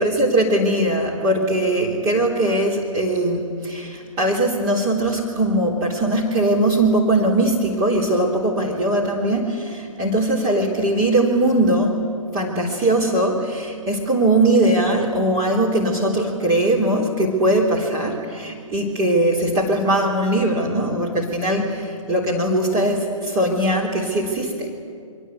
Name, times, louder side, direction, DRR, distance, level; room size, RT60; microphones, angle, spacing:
voice 1, 0.0-24.7, right 1 dB, 20° right, -2 dB, 3.4 m, -20 dB
29.5 x 24.0 x 8.3 m, 2.2 s
figure-of-eight pair, 130°, 18 cm